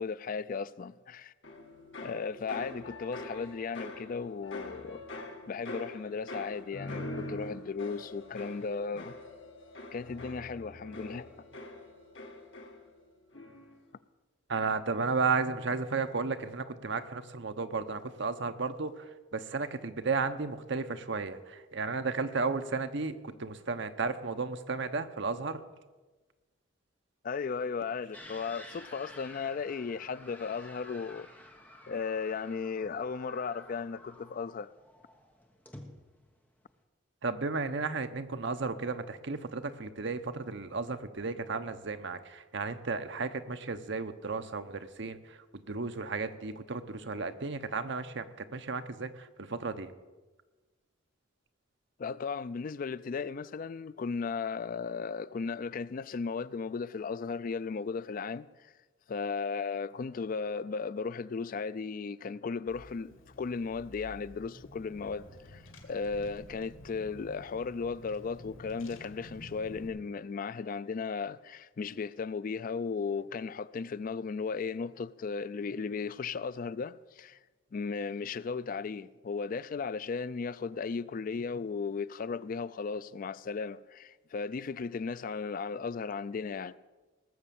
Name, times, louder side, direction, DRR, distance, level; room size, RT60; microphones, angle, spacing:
voice 1, 0.0-1.3 2.0-5.0 5.5-9.1 9.9-11.3 27.2-31.3 31.9-34.7 52.0-58.7 59.1-77.4 77.7-86.8, left 5 dB, 45° left, 0.4 m, -36 dB
sound 1, 1.4-13.0 13.3-13.8, left 1 dB, 65° left, 1.9 m, -44 dB
voice 2, 14.5-25.6 37.2-49.9, right 4 dB, 65° right, 0.9 m, -34 dB
sound 2, 28.1-36.8, left 1 dB, 10° left, 1.4 m, -52 dB
Car / Engine, 62.7-69.9, left 1 dB, 90° left, 2.5 m, -51 dB
19.0 x 7.3 x 7.0 m
head